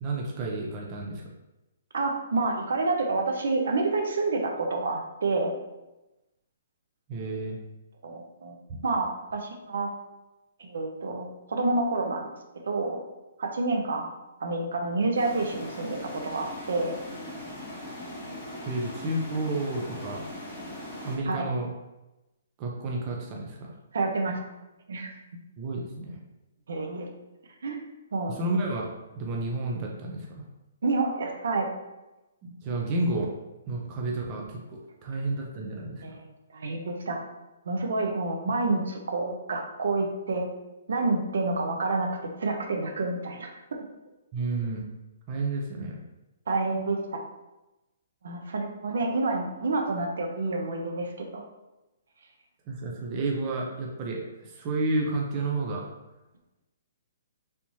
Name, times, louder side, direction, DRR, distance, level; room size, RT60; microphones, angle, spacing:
voice 1, 0.0-1.2 7.1-7.6 18.7-20.2 21.0-21.7 22.6-23.7 25.6-26.2 28.3-28.9 29.2-30.5 32.4-33.3 33.7-36.2 44.3-44.8 45.3-46.0 52.7-55.8, right 2 dB, 25° right, -1 dB, 0.5 m, -31 dB
voice 2, 1.9-5.5 8.0-8.6 8.8-9.9 10.6-12.2 12.7-13.0 13.4-14.1 14.4-17.0 21.3-21.4 23.9-24.3 24.9-25.1 26.7-27.1 27.6-27.8 28.1-28.4 30.8-31.7 36.0-36.2 36.5-37.3 37.7-40.5 40.9-43.8 46.5-47.2 48.2-51.4, right 3 dB, 75° right, 3 dB, 0.7 m, -28 dB
sound 1, 15.1-21.1, left 1 dB, 15° left, 1.0 m, -40 dB
3.4 x 2.9 x 2.7 m, 1.0 s
hypercardioid pair, 170°, 0 cm